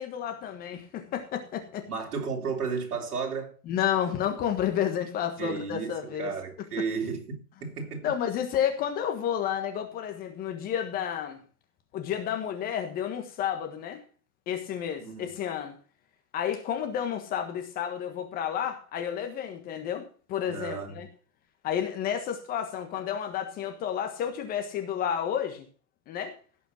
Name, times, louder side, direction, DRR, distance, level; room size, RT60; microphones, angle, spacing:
voice 1, 0.0-1.8 3.7-6.3 8.0-11.4 11.9-14.0 14.5-15.7 16.3-21.1 21.6-25.6 26.1-26.3, left 9 dB, 20° left, 1.4 m, -31 dB
voice 2, 1.9-3.5 5.4-8.1 15.0-15.3 20.5-20.9, right 5 dB, 75° right, 3.7 m, -33 dB
17.0 x 5.6 x 5.9 m
hypercardioid pair, 150°, 45 cm